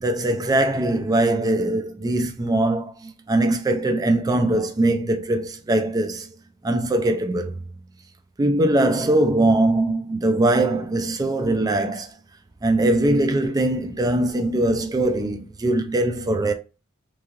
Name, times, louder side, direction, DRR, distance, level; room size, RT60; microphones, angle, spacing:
voice 1, 0.0-6.3 6.6-7.5 8.4-12.1 12.6-16.5, right 1 dB, 20° right, 0.3 m, -21 dB
3.1 x 2.5 x 2.4 m
head